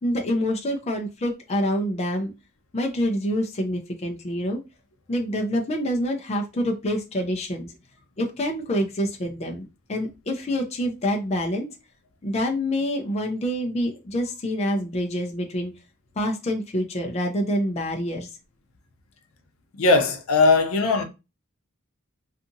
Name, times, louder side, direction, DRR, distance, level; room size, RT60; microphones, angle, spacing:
voice 1, 0.0-2.3 2.7-4.6 5.1-7.7 8.2-11.7 12.2-15.7 16.2-18.3, equal, 30° left, 0.4 m, -26 dB
voice 2, 19.8-21.0, left 3 dB, 80° left, 0.6 m, -19 dB
2.7 x 2.4 x 2.6 m
head